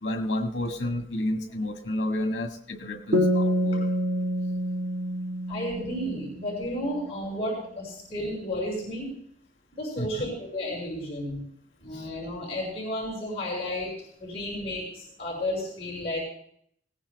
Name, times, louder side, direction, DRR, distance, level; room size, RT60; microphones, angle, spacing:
voice 1, 0.0-3.8 10.0-10.1 11.9-12.1, left 1 dB, 75° left, 3 dB, 1.7 m, -30 dB
sound 1, 3.1-6.6, equal, 90° right, 1.5 m, -27 dB
voice 2, 5.5-9.1 9.8-11.4 11.8-16.2, left 1 dB, 35° left, -4 dB, 5.3 m, -32 dB
19.5 x 17.5 x 2.3 m, 0.65 s
head